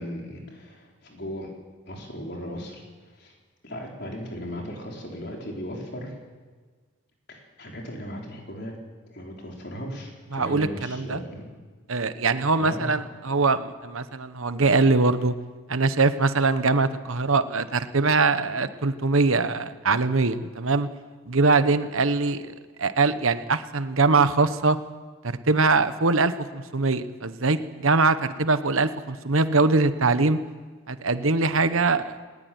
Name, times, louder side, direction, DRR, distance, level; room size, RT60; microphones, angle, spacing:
voice 1, 0.0-1.5 1.9-2.8 3.2-3.3 3.6-6.1 7.3-8.7 9.1-11.4 12.5-12.9, equal, 50° left, 0 dB, 4.6 m, -37 dB
voice 2, 10.3-11.2 11.9-15.3 15.7-20.9 21.3-24.8 25.5-30.4 30.9-32.2, right 3 dB, 75° right, 11 dB, 1.1 m, -22 dB
19.5 x 19.0 x 9.5 m, 1.4 s
head